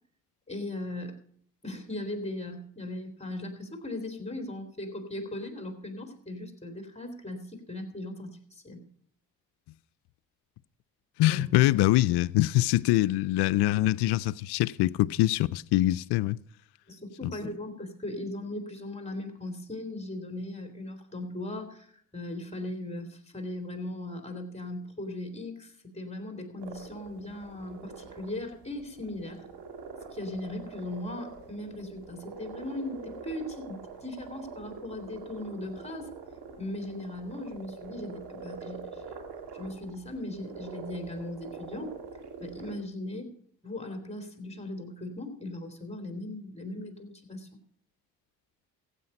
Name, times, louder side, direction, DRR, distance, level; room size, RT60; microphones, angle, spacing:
voice 1, 0.5-1.2 1.6-8.8 11.3-11.4 16.9-29.5 30.1-36.1 36.6-39.2 39.5-41.9 42.4-43.4 43.6-47.5, left 1 dB, 15° left, 3.0 m, -38 dB
voice 2, 11.2-16.4, left 16 dB, 75° left, 0.5 m, -24 dB
sound 1, 26.6-42.7, right 5 dB, 70° right, 2.3 m, -45 dB
15.0 x 8.4 x 5.3 m
supercardioid pair, 55°, 41 cm